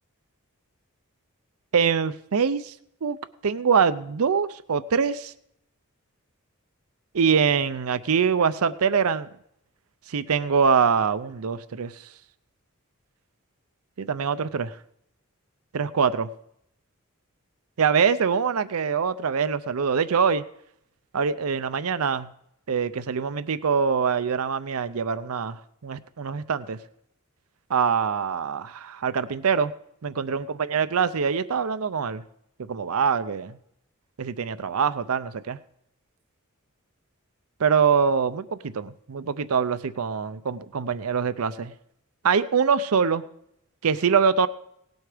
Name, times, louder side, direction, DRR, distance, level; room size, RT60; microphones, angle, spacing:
voice 1, 1.7-2.7 3.0-3.2 3.4-5.3 7.1-9.3 10.1-12.1 14.0-14.8 15.7-16.3 17.8-20.4 21.1-22.3 22.7-26.8 27.7-29.7 30.0-32.2 32.7-33.6 34.2-35.6 37.6-41.7 42.2-43.2 43.8-44.5, right 6 dB, 90° right, 14 dB, 0.6 m, -24 dB
18.0 x 8.0 x 5.0 m, 0.75 s
head